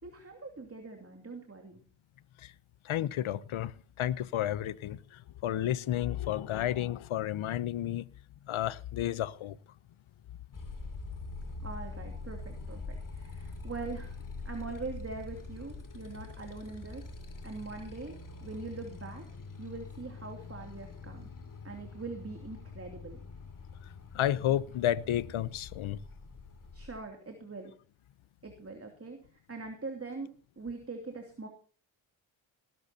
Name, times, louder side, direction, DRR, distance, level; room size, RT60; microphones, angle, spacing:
voice 1, 0.0-1.8 11.6-14.2 14.4-17.1 17.4-19.2 19.6-21.3 21.6-23.2 26.7-27.7 28.4-29.2 29.5-31.5, right 3 dB, 30° right, 2.8 m, -42 dB
voice 2, 2.8-8.0 8.5-9.6 24.1-26.0, left 12 dB, 80° left, 0.8 m, -31 dB
Motorcycle, 10.5-27.0, left 3 dB, 40° left, 2.8 m, -44 dB
18.5 x 12.5 x 2.8 m
cardioid pair, 80°, 48 cm